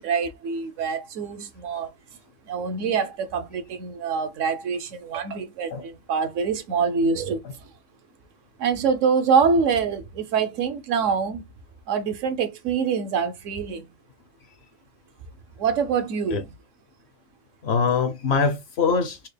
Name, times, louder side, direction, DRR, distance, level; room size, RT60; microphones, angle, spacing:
voice 1, 0.0-1.9 2.5-7.7 8.6-11.4 11.9-13.9 15.6-16.4, right 5 dB, 70° right, 1.0 m, -25 dB
voice 2, 17.6-19.3, left 5 dB, 60° left, 0.8 m, -23 dB
4.3 x 2.1 x 3.3 m
omnidirectional pair, 1.4 m